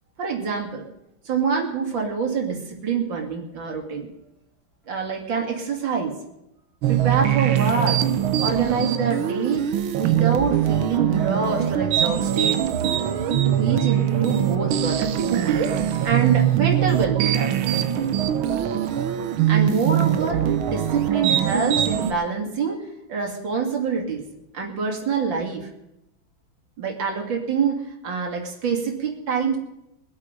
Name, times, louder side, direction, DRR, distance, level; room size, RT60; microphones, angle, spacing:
voice 1, 0.2-0.8 1.2-4.1 4.9-6.1 6.9-8.0 8.4-9.6 9.9-12.6 13.6-15.8 16.0-17.8 19.5-22.8 23.1-24.2 24.5-25.7 26.8-29.6, right 5 dB, 65° right, 1 dB, 3.2 m, -25 dB
sound 1, 6.8-22.1, right 10 dB, 90° right, 1.8 m, -22 dB
23.5 x 8.3 x 5.3 m, 0.84 s
omnidirectional pair, 2.2 m